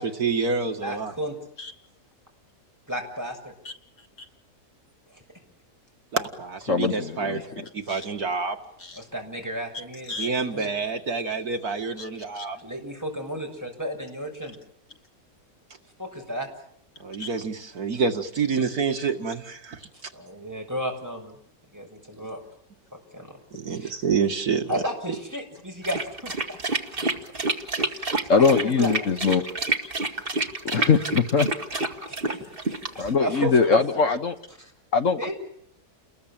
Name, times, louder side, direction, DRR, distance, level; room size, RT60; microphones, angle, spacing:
voice 1, 0.0-1.1 6.1-7.4 7.7-8.6 10.2-12.6 17.0-19.8 23.5-24.8, right 5 dB, 75° right, 5 dB, 2.4 m, -27 dB
voice 2, 0.8-1.4 2.9-3.5 9.0-10.7 12.6-14.6 16.0-16.5 20.1-21.4 21.7-22.4 23.1-23.3 23.7-23.9 24.7-26.6 26.9-27.1 27.8-28.9 32.1-34.0 34.6-34.7 35.2-35.3, equal, 10° right, 1 dB, 6.8 m, -33 dB
voice 3, 6.7-8.0 8.8-9.0 10.1-10.3 12.0-12.1 12.3-12.5 17.2-17.3 28.3-29.5 30.7-31.5 33.0-34.4 34.9-35.3, left 5 dB, 55° left, 8 dB, 1.6 m, -22 dB
sound 1, 25.8-33.1, right 3 dB, 35° right, 2.3 m, -28 dB
30.0 x 21.0 x 9.0 m, 0.71 s
omnidirectional pair, 1.6 m